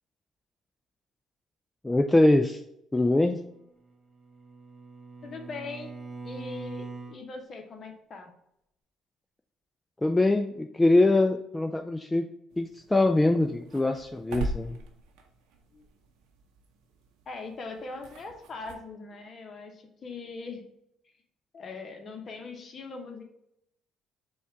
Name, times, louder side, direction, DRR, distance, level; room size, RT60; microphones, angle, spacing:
voice 1, 1.8-2.6 2.9-3.4 10.0-12.3 12.6-14.8, left 2 dB, 15° left, 5 dB, 0.3 m, -23 dB
Bowed string instrument, 3.8-7.2, right 3 dB, 20° right, 1.5 m, -42 dB
voice 2, 5.2-5.9 6.2-8.3 15.7-15.9 17.3-20.6 21.5-23.2, left 4 dB, 45° left, 4 dB, 0.9 m, -41 dB
sound 1, 12.5-18.8, right 2 dB, 75° right, 0.6 m, -41 dB
4.3 x 2.3 x 4.5 m, 0.78 s
hypercardioid pair, 60°, 0 cm